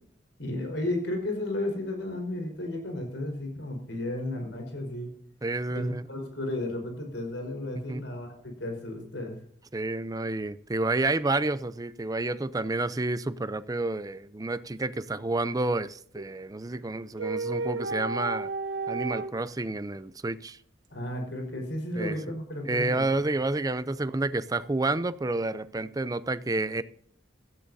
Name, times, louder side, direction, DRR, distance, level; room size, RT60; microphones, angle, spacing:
voice 1, 0.4-5.1 5.7-9.4 20.9-23.0, left 1 dB, 80° left, 4.7 m, -33 dB
voice 2, 5.4-6.0 7.7-8.0 9.7-18.5 18.9-20.6 22.0-22.2 22.7-26.8, right 2 dB, 20° right, 0.5 m, -29 dB
sound 1, 16.2-16.3 17.2-19.3, right 3 dB, 90° right, 1.6 m, -32 dB
17.0 x 13.5 x 2.7 m
head